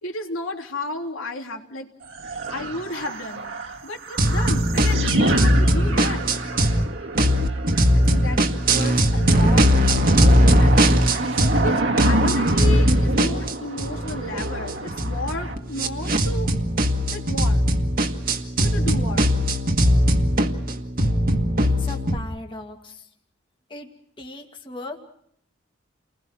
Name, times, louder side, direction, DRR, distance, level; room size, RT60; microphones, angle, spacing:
voice 1, 0.0-1.9 2.5-3.5 3.8-6.3 8.0-11.2 11.6-16.5 17.1-17.6 18.6-19.3, left 1 dB, 90° left, 1 dB, 3.3 m, -33 dB
sound 1, 2.0-15.6, right 2 dB, 65° right, 2.0 m, -28 dB
sound 2, 4.2-6.8 7.1-11.7 12.0-22.2, equal, 45° right, 1.7 m, -20 dB
voice 2, 21.6-23.0 23.7-23.9 24.2-25.0, left 2 dB, 25° left, 3 dB, 2.0 m, -37 dB
29.5 x 20.5 x 6.1 m, 0.69 s
head